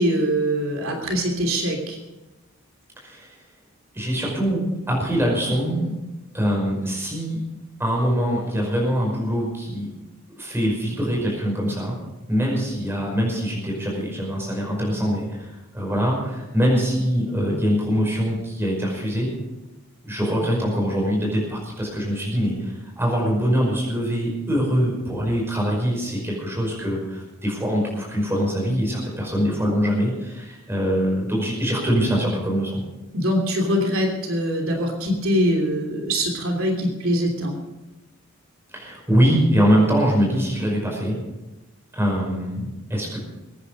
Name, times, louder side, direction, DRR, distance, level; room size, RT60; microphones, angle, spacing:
voice 1, 0.0-2.0 33.1-37.5, equal, 70° right, 1 dB, 3.1 m, -23 dB
voice 2, 3.0-3.3 3.9-5.9 6.3-7.4 7.8-9.9 10.3-12.0 12.3-19.3 20.0-32.8 38.7-41.2 41.9-43.2, equal, 10° right, -2 dB, 5.4 m, -23 dB
22.5 x 9.9 x 5.3 m, 1.0 s
head